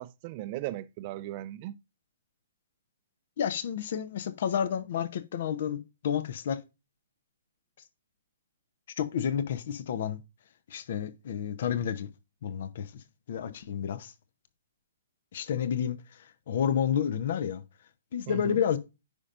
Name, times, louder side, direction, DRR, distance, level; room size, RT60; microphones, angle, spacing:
voice 1, 0.0-1.8 18.3-18.6, right 14 dB, 35° right, 0.5 m, -37 dB
voice 2, 3.4-6.6 9.0-10.2 10.7-12.1 12.4-12.9 13.3-14.1 15.3-16.0 16.5-17.6 18.1-18.8, left 8 dB, 55° left, 0.8 m, -30 dB
9.7 x 5.5 x 2.5 m
figure-of-eight pair, 125°, 0 cm